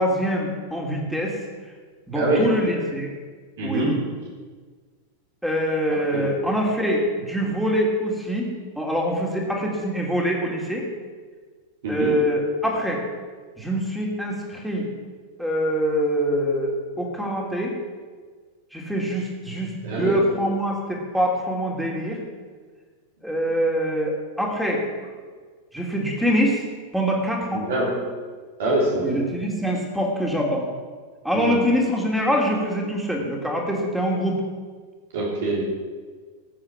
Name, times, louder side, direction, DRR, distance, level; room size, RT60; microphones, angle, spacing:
voice 1, 0.0-1.3 2.1-3.1 3.6-4.0 5.4-8.5 8.7-10.9 11.9-13.0 13.6-14.9 15.4-16.7 17.0-17.7 18.7-22.2 23.2-24.8 25.7-26.6 26.9-27.7 29.0-30.7 31.2-34.4, equal, ahead, -1 dB, 3.3 m, -24 dB
voice 2, 2.1-2.6 3.6-4.0 5.9-6.3 11.8-12.2 19.8-20.2 27.5-28.0 28.6-29.2 31.3-31.6 35.1-35.7, right 1 dB, 55° right, -3 dB, 3.6 m, -24 dB
19.0 x 8.8 x 6.1 m, 1.5 s
figure-of-eight pair, 90°, 0 cm